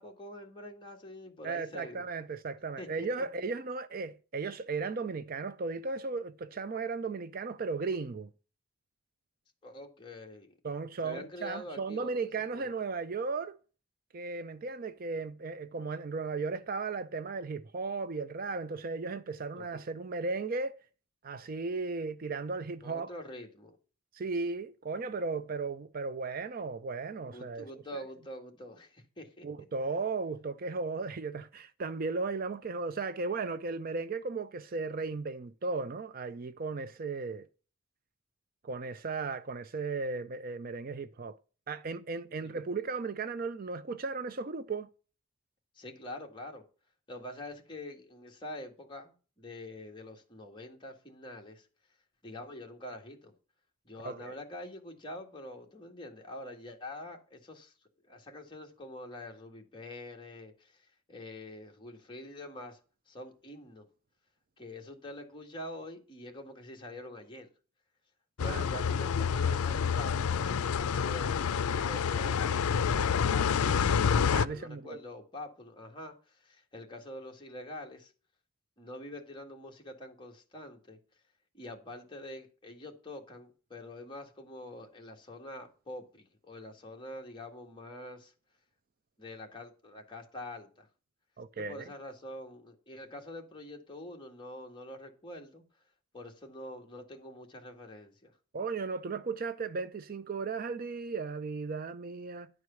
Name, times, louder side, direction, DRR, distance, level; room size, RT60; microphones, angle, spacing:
voice 1, 0.0-2.0 2.8-3.3 9.6-10.5 11.0-12.2 12.5-12.7 19.5-19.8 22.8-23.8 27.2-29.5 42.4-42.5 45.7-46.6 47.1-51.7 52.2-53.3 53.8-57.7 58.1-62.8 63.1-63.9 64.6-67.5 68.4-74.0 74.4-78.1 78.8-81.0 81.5-88.3 89.2-90.9 91.6-95.6 96.1-98.3, left 1 dB, 20° left, 1.7 m, -45 dB
voice 2, 1.4-8.3 10.6-13.6 14.1-20.8 21.2-23.1 24.1-28.0 29.4-37.5 38.6-41.4 41.7-44.9 54.0-54.3 68.4-68.6 74.3-75.0 91.4-91.9 98.5-102.5, right 4 dB, 40° right, 0.4 m, -36 dB
sound 1, 68.4-74.5, left 7 dB, 85° left, 0.5 m, -28 dB
11.0 x 4.7 x 6.9 m
head